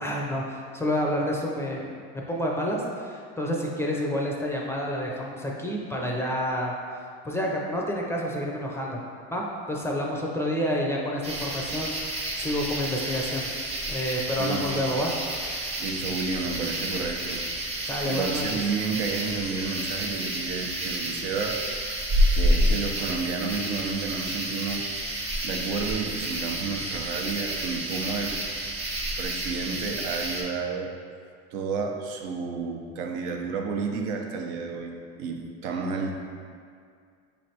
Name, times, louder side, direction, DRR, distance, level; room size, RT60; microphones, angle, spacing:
voice 1, 0.0-6.7 7.2-9.0 9.3-13.5 13.9-15.1 17.8-18.6, equal, 10° left, -2 dB, 0.4 m, -29 dB
sound 1, 11.2-30.4, right 1 dB, 20° right, 0.7 m, -29 dB
voice 2, 14.4-15.0 15.8-17.4 18.0-21.6 22.3-24.9 25.4-28.3 29.2-30.9 31.5-36.1, right 5 dB, 80° right, 2 dB, 0.6 m, -31 dB
5.3 x 3.2 x 2.7 m, 2.2 s
supercardioid pair, 115°, 31 cm